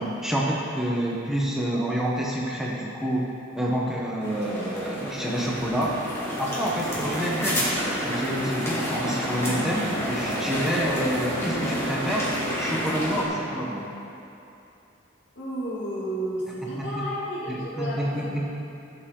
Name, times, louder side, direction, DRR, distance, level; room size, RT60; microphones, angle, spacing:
voice 1, 0.0-3.3 3.6-5.9 6.4-7.7 8.0-12.2 12.6-13.9 16.9-17.0 17.5-18.5, right 1 dB, ahead, -4 dB, 1.0 m, -28 dB
sound 1, 4.2-13.2, equal, 15° left, 2.2 m, -29 dB
voice 2, 15.3-18.5, equal, 60° left, -7 dB, 2.6 m, -32 dB
16.0 x 6.9 x 3.7 m, 2.8 s
head